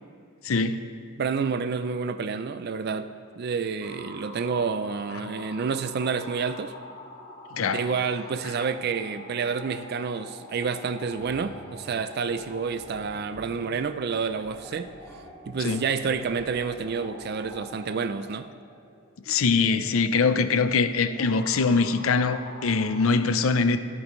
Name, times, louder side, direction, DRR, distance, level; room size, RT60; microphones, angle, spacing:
voice 1, 0.4-0.8 7.5-7.9 15.6-15.8 19.3-23.8, left 4 dB, 75° left, 0.6 m, -23 dB
voice 2, 1.2-3.1 3.4-6.7 7.7-14.9 15.5-18.5, right 5 dB, 50° right, 0.4 m, -29 dB
sound 1, 3.8-23.1, left 1 dB, 30° left, 2.1 m, -46 dB
sound 2, 11.0-17.6, equal, 10° left, 1.6 m, -48 dB
22.5 x 8.4 x 3.1 m
head